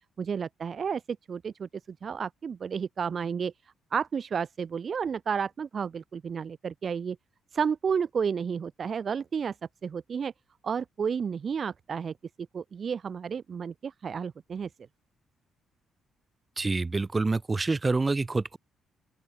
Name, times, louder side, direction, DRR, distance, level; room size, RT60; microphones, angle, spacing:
voice 1, 0.2-3.5 3.9-7.2 7.5-9.6 9.8-10.3 10.6-12.1 12.5-14.7, right 6 dB, 45° right, 2.5 m, -31 dB
voice 2, 16.6-18.6, right 3 dB, 25° right, 1.3 m, -27 dB
open air
cardioid pair, 90°, 0 cm